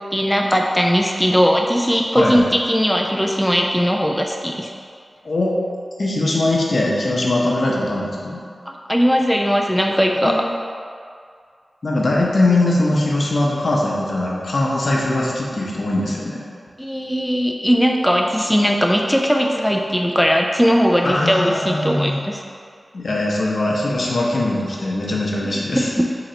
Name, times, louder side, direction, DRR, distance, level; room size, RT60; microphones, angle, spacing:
voice 1, 0.1-4.7 8.7-10.4 16.8-22.4 25.7-26.1, equal, 5° left, 1 dB, 0.4 m, -19 dB
voice 2, 6.0-8.4 10.2-10.4 11.8-16.4 21.0-22.2 22.9-25.9, left 2 dB, 65° left, -3 dB, 0.7 m, -21 dB
3.8 x 2.9 x 4.3 m, 2.2 s
cardioid pair, 45°, 0 cm